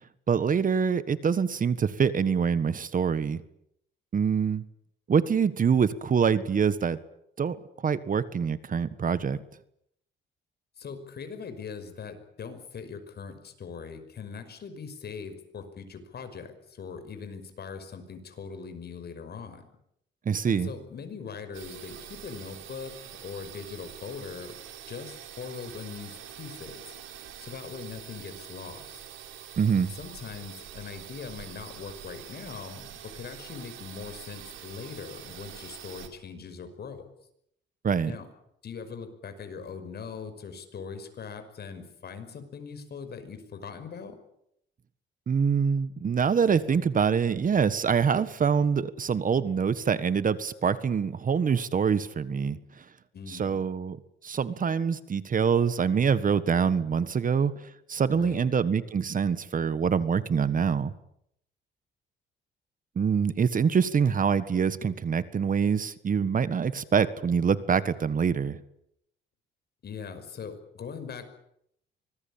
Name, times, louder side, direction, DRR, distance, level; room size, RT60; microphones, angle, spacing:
voice 1, 0.3-3.4 4.1-4.6 5.1-7.0 7.4-7.6 7.8-9.4 20.2-20.7 29.6-29.9 37.8-38.1 45.3-52.6 53.3-54.0 54.2-57.5 57.9-60.9 62.9-68.6, right 6 dB, 45° right, 15 dB, 1.5 m, -25 dB
voice 2, 10.8-19.7 20.5-24.6 24.9-26.8 27.4-28.8 29.8-37.1 38.0-38.3 38.6-44.2 53.1-53.7 58.1-58.5 69.8-71.2, left 6 dB, 55° left, 9 dB, 5.7 m, -41 dB
sound 1, 21.5-36.1, right 10 dB, 80° right, 3.9 m, -45 dB
25.0 x 20.0 x 8.8 m, 0.74 s
cardioid pair, 90°, 20 cm